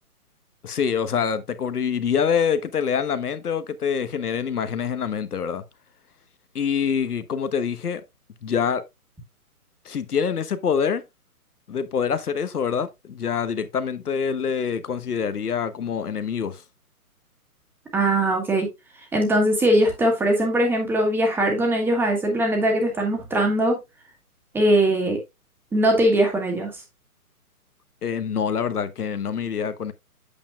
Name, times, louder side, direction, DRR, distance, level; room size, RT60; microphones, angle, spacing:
voice 1, 0.6-5.6 6.5-8.0 8.4-8.8 9.8-11.0 11.7-16.6 28.0-29.9, left 7 dB, 80° left, 1.3 m, -25 dB
voice 2, 17.9-18.7 19.1-23.8 24.5-25.2 25.7-26.7, right 1 dB, 5° right, 1.5 m, -21 dB
8.5 x 7.5 x 2.2 m
hypercardioid pair, 150°, 45 cm